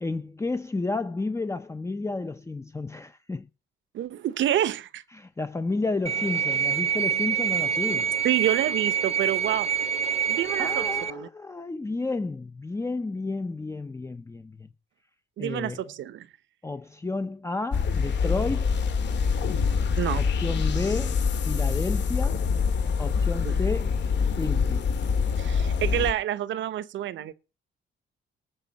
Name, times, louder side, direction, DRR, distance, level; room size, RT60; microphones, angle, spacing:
voice 1, 0.0-3.5 5.1-8.1 10.6-14.7 15.4-15.9 16.6-18.8 20.2-22.4 23.0-24.0 24.4-24.9, left 3 dB, 15° left, 0.7 m, -31 dB
voice 2, 3.9-5.0 8.2-9.7 10.3-11.3 15.4-16.3 20.0-20.2 23.4-23.6 25.4-27.3, right 11 dB, 70° right, 0.9 m, -28 dB
sound 1, 6.1-11.1, right 8 dB, 30° right, 0.8 m, -26 dB
sound 2, 17.7-26.1, left 5 dB, 65° left, 2.1 m, -25 dB
19.5 x 6.8 x 4.1 m
cardioid pair, 90°, 20 cm